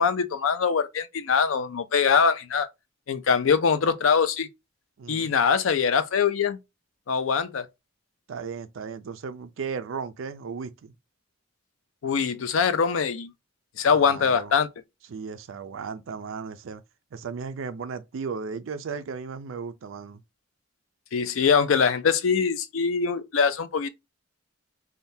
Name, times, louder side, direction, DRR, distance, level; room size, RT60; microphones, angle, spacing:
voice 1, 0.0-2.7 3.1-4.5 5.1-6.6 7.1-7.7 12.0-13.3 13.8-14.7 21.1-23.9, left 6 dB, 80° left, 0.4 m, -23 dB
voice 2, 5.0-5.3 8.3-10.9 13.8-14.5 15.1-16.8 17.1-20.2, right 5 dB, 75° right, 0.4 m, -35 dB
3.5 x 2.2 x 2.7 m
head